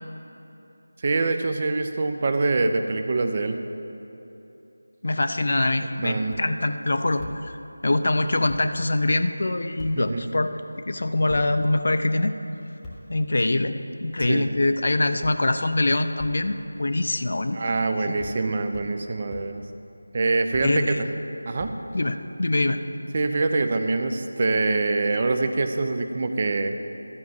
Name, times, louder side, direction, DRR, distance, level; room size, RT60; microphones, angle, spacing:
voice 1, 1.0-3.6 6.0-6.4 10.0-10.3 14.3-14.5 17.5-19.6 20.1-20.9 21.5-21.7 23.1-26.8, right 3 dB, 30° right, 7 dB, 0.5 m, -24 dB
voice 2, 5.0-7.6 7.8-10.5 10.9-12.3 13.1-18.2 20.6-21.1 21.9-22.8, left 2 dB, 50° left, 9 dB, 0.5 m, -24 dB
sound 1, 6.2-6.4 7.2-7.3 8.1-8.2 8.5-8.6 9.8-9.9 11.3-11.4 12.8-13.0 14.2-14.3 15.2-15.3 16.2-16.3 17.4-17.8 18.2-18.4 18.7-18.9 19.3-19.4 20.5-20.7 21.6-22.3, left 2 dB, 5° left, 1.0 m, -40 dB
12.5 x 5.8 x 7.3 m, 3.0 s
figure-of-eight pair, 165°, 0 cm